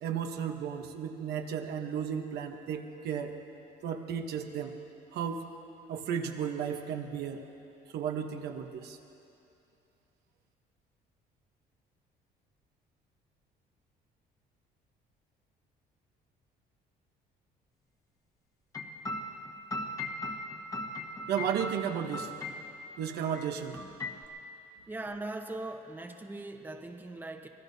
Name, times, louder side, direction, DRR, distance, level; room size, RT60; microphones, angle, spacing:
voice 1, 0.0-3.3 3.8-4.8 5.1-5.4 5.9-7.5 7.9-9.0 21.3-22.3 23.0-23.8, right 8 dB, 70° right, 4 dB, 1.0 m, -34 dB
sound 1, 18.7-23.0 23.4-23.5 23.7-24.2, left 2 dB, 20° left, 1.3 m, -38 dB
voice 2, 24.9-27.5, right 2 dB, 10° right, 4 dB, 1.0 m, -40 dB
25.5 x 18.5 x 2.7 m, 2.8 s
cardioid pair, 110°, 17 cm